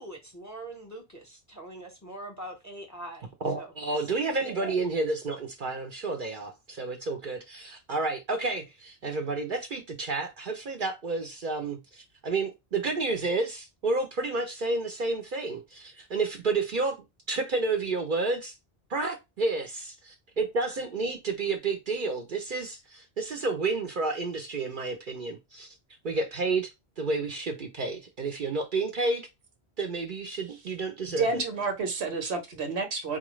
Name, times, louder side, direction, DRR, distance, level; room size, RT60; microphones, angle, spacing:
voice 1, 0.0-3.3 3.6-3.7 4.0-4.8, right 1 dB, 15° left, 0.9 m, -42 dB
voice 2, 3.4-17.0 17.3-18.6 18.9-25.7 26.0-26.7 27.0-29.3 29.8-31.4, right 3 dB, 55° right, 0.8 m, -30 dB
voice 3, 31.1-33.2, right 4 dB, 80° right, 1.2 m, -30 dB
4.2 x 2.5 x 3.0 m
omnidirectional pair, 1.1 m